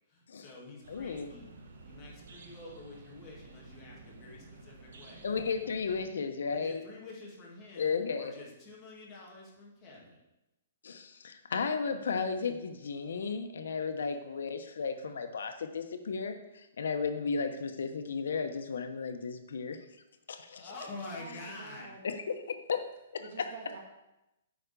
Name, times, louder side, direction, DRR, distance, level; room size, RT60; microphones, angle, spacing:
voice 1, 0.1-1.5 1.8-5.2 5.6-5.7 6.5-10.2 20.5-21.9, left 2 dB, 15° left, -5 dB, 2.1 m, -48 dB
sound 1, 0.8-6.0, right 3 dB, 70° right, 1.5 m, -52 dB
voice 2, 0.9-1.3 5.2-6.8 7.8-8.3 10.8-19.8 20.3-20.7 22.0-22.4 22.7-22.8 23.1-23.5, left 5 dB, 80° left, 7 dB, 1.0 m, -34 dB
voice 3, 21.2-22.1 23.2-23.8, right 4 dB, 45° right, 1 dB, 2.0 m, -48 dB
9.3 x 5.0 x 6.8 m, 0.92 s
hypercardioid pair, 175°, 0 cm